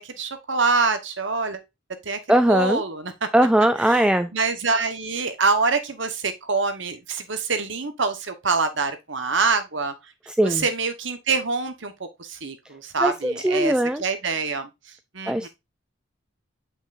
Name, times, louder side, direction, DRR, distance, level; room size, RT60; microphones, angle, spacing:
voice 1, 0.0-1.6 2.0-2.2 2.5-3.1 3.9-4.1 4.3-9.9 10.4-13.7 14.0-14.7 15.1-15.5, right 4 dB, 65° right, 1.3 m, -25 dB
voice 2, 2.3-2.8 3.3-4.3 10.3-10.6 13.0-14.0 15.3-15.5, right 1 dB, 5° right, 0.3 m, -20 dB
8.3 x 5.5 x 2.6 m
head